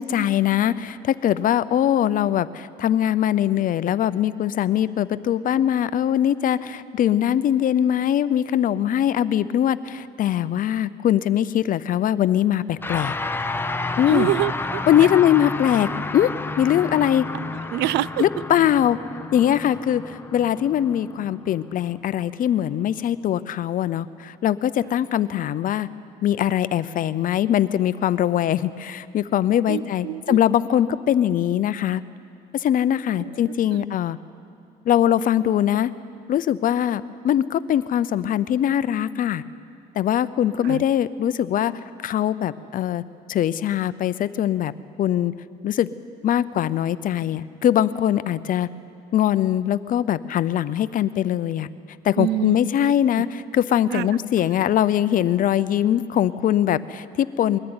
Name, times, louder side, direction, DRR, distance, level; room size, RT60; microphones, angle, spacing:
voice 1, 0.0-13.2 14.0-14.3 14.9-16.3 16.6-17.3 18.2-19.0 19.3-25.9 26.2-32.0 32.5-34.2 34.9-35.9 36.3-39.4 40.0-41.7 42.0-43.0 43.3-44.7 45.0-45.3 45.6-45.9 46.2-48.7 49.1-51.7 52.0-57.6, left 10 dB, 55° left, 15 dB, 0.7 m, -21 dB
sound 1, 12.8-22.3, left 3 dB, 15° left, 0.9 m, -31 dB
voice 2, 14.1-15.1 17.7-18.4 24.8-24.9 29.7-30.4 33.2-33.3 33.7-33.8 40.6-40.8 52.2-52.9 53.9-54.1, right 15 dB, 80° right, 21 dB, 0.4 m, -26 dB
21.5 x 14.0 x 9.7 m, 2.4 s
cardioid pair, 110°, 17 cm